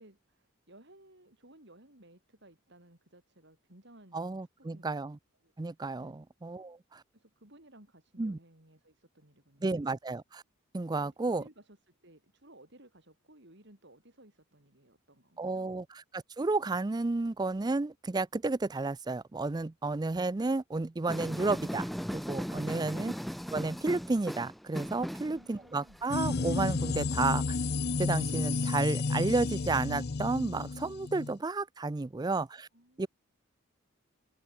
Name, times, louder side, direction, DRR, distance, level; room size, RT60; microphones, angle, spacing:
voice 1, 0.0-5.0 5.4-6.2 7.1-9.7 11.0-15.7 25.3-26.0 32.7-33.1, right 1 dB, 55° right, 5.7 m, -58 dB
voice 2, 4.1-5.2 5.6-7.0 8.2-8.4 9.6-10.4 10.7-11.4 15.4-15.8 16.1-23.1 23.5-27.6 28.0-32.7 33.0-33.1, right 3 dB, 20° right, 0.4 m, -32 dB
sound 1, 21.1-26.2, equal, ahead, 0.8 m, -37 dB
sound 2, 26.1-31.4, left 3 dB, 50° left, 0.6 m, -32 dB
head